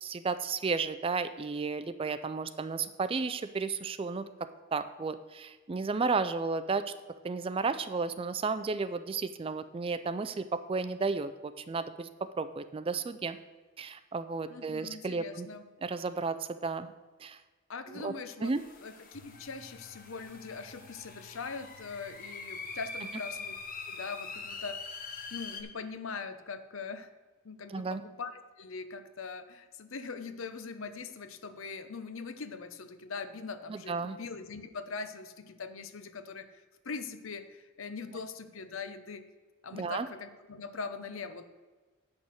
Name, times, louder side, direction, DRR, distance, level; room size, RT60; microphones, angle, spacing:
voice 1, 0.0-4.3 4.7-6.9 7.2-13.4 13.8-15.5 15.8-16.9 17.2-17.4 17.9-18.1 18.4-18.6 27.7-28.0 33.7-34.2 39.7-40.1, right 4 dB, 25° right, 12 dB, 0.3 m, -33 dB
voice 2, 14.5-15.7 17.7-18.5 18.8-23.6 23.9-27.1 27.4-39.2 39.6-41.5, left 4 dB, 65° left, 11 dB, 0.7 m, -42 dB
sound 1, 18.4-25.6, left 4 dB, 40° left, 1.0 m, -43 dB
sound 2, 19.1-25.3, left 3 dB, 85° left, 1.1 m, -60 dB
8.5 x 6.2 x 6.4 m, 1.3 s
head